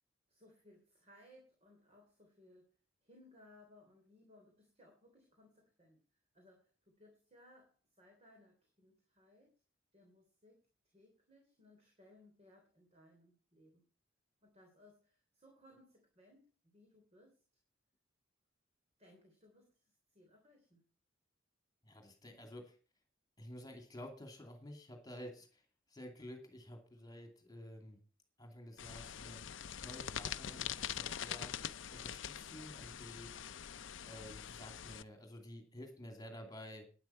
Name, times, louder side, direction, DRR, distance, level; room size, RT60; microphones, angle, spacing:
voice 1, 0.3-2.7 3.0-6.0 6.3-9.5 9.9-13.8 14.4-17.4 19.0-20.8, left 1 dB, 35° right, 1 dB, 3.3 m, -64 dB
voice 2, 21.8-22.8 23.4-25.6 25.9-28.0 28.4-29.4 29.8-31.5 31.9-33.8 34.0-36.9, equal, 20° left, 5 dB, 2.6 m, -51 dB
sound 1, 28.8-35.0, left 9 dB, 70° left, 0.6 m, -44 dB
12.0 x 10.0 x 5.7 m, 0.37 s
head